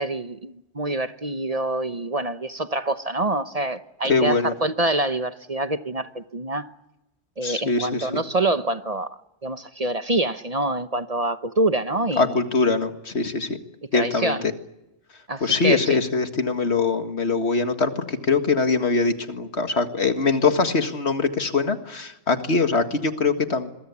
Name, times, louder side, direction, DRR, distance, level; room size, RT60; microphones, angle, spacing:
voice 1, 0.0-6.7 7.4-12.3 13.9-14.4 15.3-16.0, right 2 dB, 35° right, 1.0 m, -26 dB
voice 2, 4.1-4.5 7.4-8.2 12.2-13.6 13.9-14.5 15.4-23.7, left 4 dB, 70° left, 2.1 m, -22 dB
25.5 x 23.0 x 8.4 m
omnidirectional pair, 1.2 m